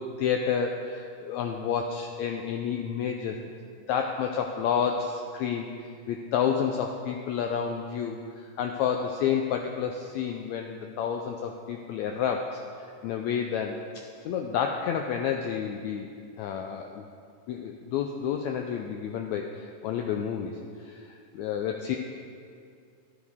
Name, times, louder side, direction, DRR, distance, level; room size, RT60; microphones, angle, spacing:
voice 1, 0.0-3.4 3.9-5.7 6.1-12.6 13.0-13.8 14.2-16.1 16.4-17.0 17.5-22.0, left 7 dB, 90° left, 3 dB, 1.6 m, -30 dB
11.5 x 11.0 x 3.6 m, 2.3 s
omnidirectional pair, 3.8 m